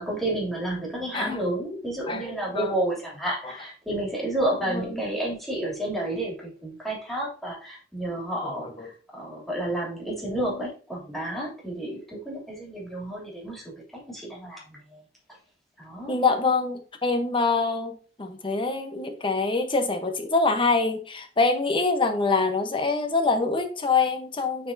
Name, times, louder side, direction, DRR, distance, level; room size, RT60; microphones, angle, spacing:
voice 1, 0.0-15.0 15.8-16.2, right 1 dB, ahead, -5 dB, 2.8 m, -31 dB
voice 2, 2.1-2.7 4.7-4.9 8.4-8.5 8.8-8.9 16.1-24.7, left 3 dB, 30° left, 5 dB, 0.9 m, -25 dB
8.9 x 4.4 x 2.7 m, 0.39 s
head